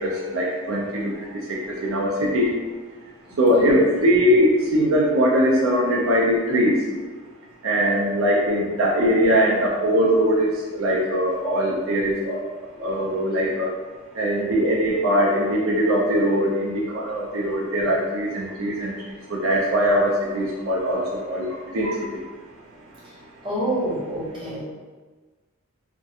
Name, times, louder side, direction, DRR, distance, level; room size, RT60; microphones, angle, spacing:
voice 1, 0.0-2.5 3.4-6.9 7.6-12.4 12.8-13.7 14.2-18.9 19.3-22.2, equal, 80° right, -3 dB, 0.4 m, -21 dB
voice 2, 23.4-24.6, right 1 dB, 25° right, -9 dB, 0.8 m, -27 dB
2.4 x 2.1 x 2.7 m, 1.4 s
head